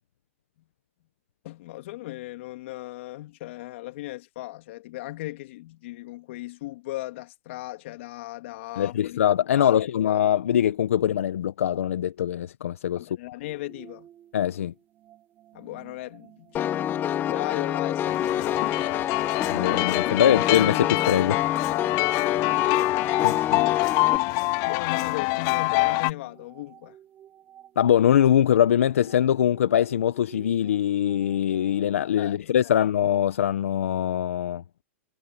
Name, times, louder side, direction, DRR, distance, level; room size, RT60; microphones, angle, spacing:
voice 1, 1.4-9.2 9.5-9.8 13.0-14.1 15.5-18.8 22.6-23.0 24.6-27.0 32.2-32.8, left 17 dB, 60° left, 2.6 m, -37 dB
voice 2, 8.8-13.0 14.3-14.7 19.5-21.5 23.2-23.6 27.8-34.6, left 10 dB, 80° left, 1.0 m, -23 dB
sound 1, 13.4-32.1, right 11 dB, 30° right, 3.4 m, -52 dB
Piano, 16.5-24.2, left 10 dB, 25° left, 1.3 m, -27 dB
sound 2, 18.1-26.1, left 24 dB, 45° left, 0.9 m, -25 dB
hypercardioid pair, 125°, 7 cm